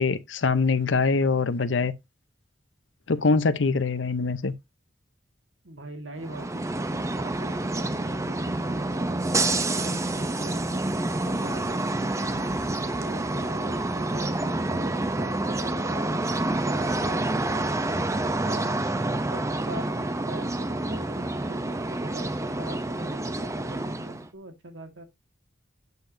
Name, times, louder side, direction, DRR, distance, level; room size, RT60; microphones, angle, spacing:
voice 1, 0.0-1.9 3.1-4.5, left 4 dB, 75° left, 0.7 m, -23 dB
voice 2, 5.6-10.8 11.3-17.8 18.4-18.7 19.1-25.0, right 1 dB, 75° right, 1.9 m, -42 dB
sound 1, 6.2-24.3, right 2 dB, 15° right, 0.7 m, -28 dB
8.1 x 6.8 x 2.6 m
head